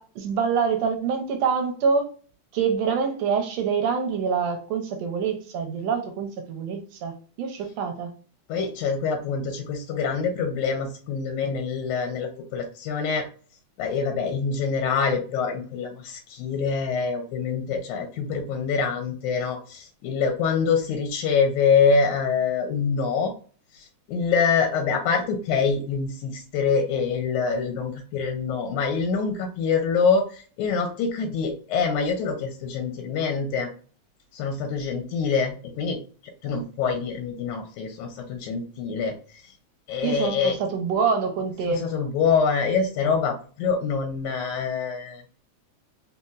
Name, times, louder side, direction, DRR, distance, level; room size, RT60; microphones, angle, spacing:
voice 1, 0.0-2.1 2.5-7.1 7.4-8.1 40.0-41.9, right 6 dB, 70° right, 1.8 m, -26 dB
voice 2, 8.5-13.3 13.8-23.3 23.7-33.7 34.3-36.0 36.4-39.1 39.9-40.6 41.6-45.2, left 5 dB, 85° left, 2.1 m, -25 dB
4.2 x 4.0 x 2.3 m
omnidirectional pair, 3.3 m